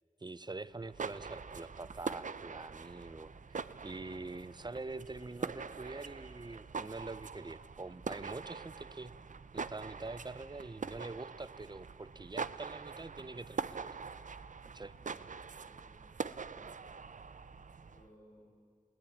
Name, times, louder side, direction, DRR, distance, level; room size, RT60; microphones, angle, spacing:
voice 1, 0.2-3.6 3.8-9.1 9.5-14.0 14.7-14.9, right 3 dB, 35° right, 17 dB, 0.7 m, -45 dB
sound 1, 0.7-18.1, right 5 dB, 70° right, 0.6 m, -44 dB
voice 2, 14.8-15.2 15.5-16.1 16.5-16.7 17.4-18.6, equal, 80° left, -4 dB, 7.8 m, -63 dB
21.0 x 18.0 x 8.7 m, 2.1 s
wide cardioid pair, 80°, 14 cm